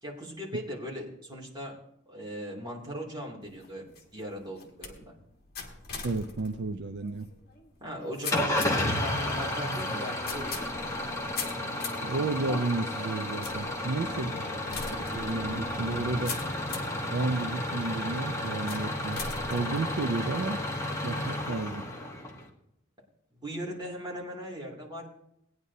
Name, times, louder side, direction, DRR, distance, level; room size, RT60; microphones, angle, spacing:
voice 1, 0.0-1.8 2.1-3.9 4.1-5.1 7.8-10.7 13.9-14.4 23.3-25.2, equal, 20° right, -3 dB, 2.6 m, -39 dB
sound 1, 3.4-17.0 17.6-18.1 18.7-20.5, left 4 dB, 50° left, 1.5 m, -42 dB
voice 2, 6.0-7.3 12.0-14.4 14.9-16.4 17.1-19.2 19.5-20.6 21.0-21.9, right 3 dB, 55° right, 8 dB, 0.5 m, -32 dB
Engine starting / Idling, 8.3-22.5, left 1 dB, 15° left, 1.2 m, -32 dB
18.0 x 9.6 x 2.7 m, 0.78 s
head